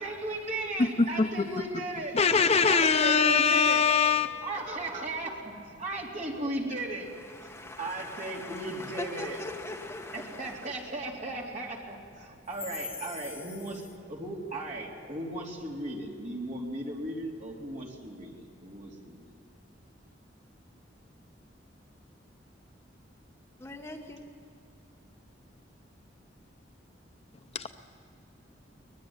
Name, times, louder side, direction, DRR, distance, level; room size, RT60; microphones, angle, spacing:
voice 1, 0.0-2.2 2.6-3.9 4.4-7.1 7.8-9.4 10.1-19.3, right 1 dB, 40° right, -1 dB, 3.7 m, -36 dB
voice 2, 2.1-4.4 27.5-27.7, left 5 dB, 35° left, 9 dB, 0.6 m, -23 dB
voice 3, 7.3-10.7 23.6-24.2, left 1 dB, 15° left, 2 dB, 1.3 m, -41 dB
24.0 x 20.0 x 9.0 m, 2.5 s
head